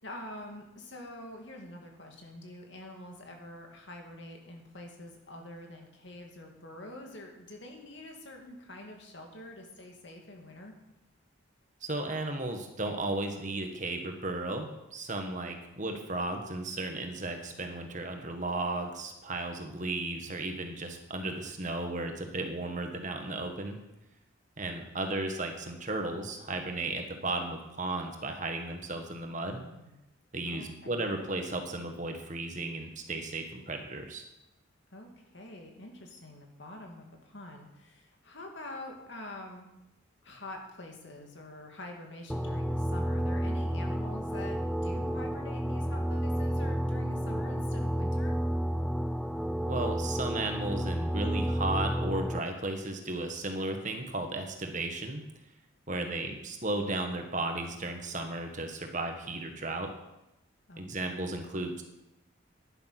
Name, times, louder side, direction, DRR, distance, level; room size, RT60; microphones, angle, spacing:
voice 1, 0.0-10.7 29.4-30.0 30.4-31.1 34.9-39.7 40.2-48.3 55.9-56.4 60.7-61.2, left 1 dB, 60° left, 2 dB, 2.5 m, -46 dB
voice 2, 11.8-23.8 24.6-29.6 30.3-34.2 49.7-55.2 55.9-59.9 60.8-61.8, right 2 dB, 35° right, 4 dB, 1.5 m, -35 dB
sound 1, 42.3-52.4, equal, ahead, 0.4 m, -31 dB
12.0 x 10.5 x 6.0 m, 0.92 s
head